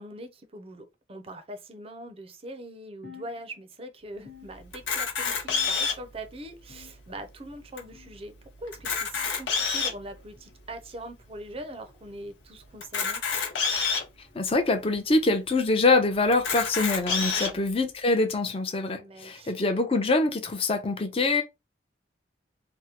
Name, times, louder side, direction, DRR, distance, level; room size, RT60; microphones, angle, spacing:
voice 1, 0.0-8.3 8.6-13.2 17.3-17.6 19.0-19.5, right 1 dB, 30° right, 0.5 m, -42 dB
sound 1, 3.0-3.9 4.3-5.1 5.5-6.1 6.7-7.3 7.9-8.3 9.1-9.4 10.4-10.6 11.6-11.8 12.8-13.0 14.0-14.2 15.2-15.4 16.5-16.6 17.7-17.8, left 7 dB, 60° left, 1.2 m, -52 dB
Camera, 4.7-6.1 6.8-6.9 7.1-7.2 7.8-7.9 8.7-10.0 10.7-10.8 12.8-14.0 14.8-14.9 15.1-15.2 16.3-17.5, left 5 dB, 85° left, 1.0 m, -27 dB
voice 2, 14.3-21.4, left 3 dB, 30° left, 0.6 m, -24 dB
3.4 x 2.1 x 2.8 m
head